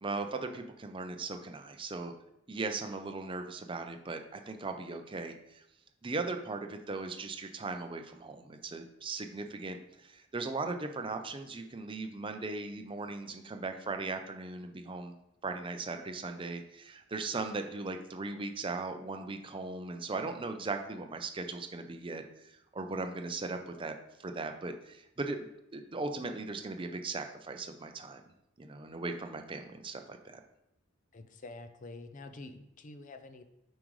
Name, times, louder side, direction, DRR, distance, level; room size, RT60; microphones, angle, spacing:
voice 1, 0.0-2.1 2.5-5.6 6.0-15.1 15.4-28.2 28.6-30.4, right 3 dB, 25° right, 6 dB, 0.5 m, -38 dB
voice 2, 31.1-33.4, left 2 dB, 35° left, 9 dB, 0.5 m, -47 dB
7.3 x 5.1 x 3.1 m, 0.86 s
head